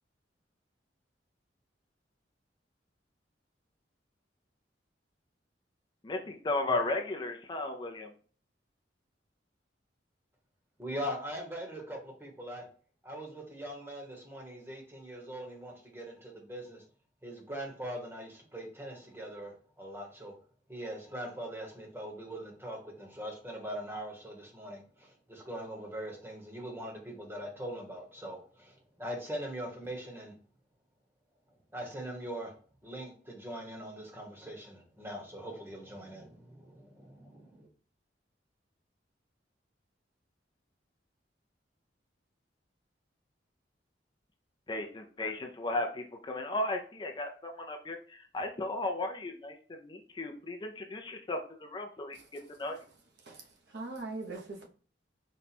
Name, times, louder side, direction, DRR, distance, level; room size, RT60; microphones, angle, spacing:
voice 1, 6.0-8.1 44.7-52.2 52.5-52.8, left 2 dB, 25° left, 0.4 m, -35 dB
voice 2, 10.8-12.6 13.0-16.8 17.2-20.3 20.7-30.3 31.7-32.5 32.8-37.7, equal, 15° right, 1.0 m, -41 dB
voice 3, 53.2-54.7, right 3 dB, 65° right, 0.9 m, -41 dB
4.2 x 2.3 x 4.1 m
head